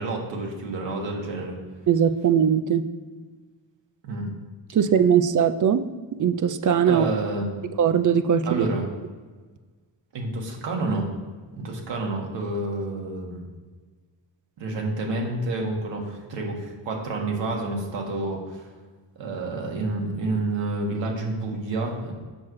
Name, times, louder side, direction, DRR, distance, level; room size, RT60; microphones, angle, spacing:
voice 1, 0.0-1.6 4.0-4.3 6.9-7.7 8.4-8.9 10.1-11.1 11.6-13.4 14.6-18.7 19.2-22.1, right 2 dB, 85° right, 0 dB, 1.6 m, -29 dB
voice 2, 1.9-2.8 4.7-5.8 6.2-7.1 7.8-8.7, right 8 dB, 45° right, 10 dB, 0.4 m, -20 dB
7.6 x 6.0 x 3.1 m, 1.4 s
wide cardioid pair, 125°, 44 cm